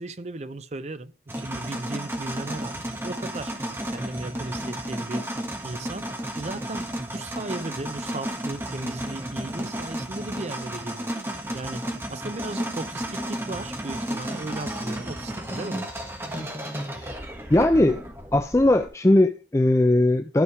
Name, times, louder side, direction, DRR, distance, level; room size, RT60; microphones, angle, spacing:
voice 1, 0.0-5.3 5.6-15.9, right 2 dB, 40° right, 0.5 m, -36 dB
sound 1, 1.3-18.9, right 1 dB, 15° right, 1.3 m, -33 dB
voice 2, 17.5-18.0 18.3-20.4, left 1 dB, 15° left, 0.4 m, -19 dB
12.5 x 4.9 x 4.7 m
head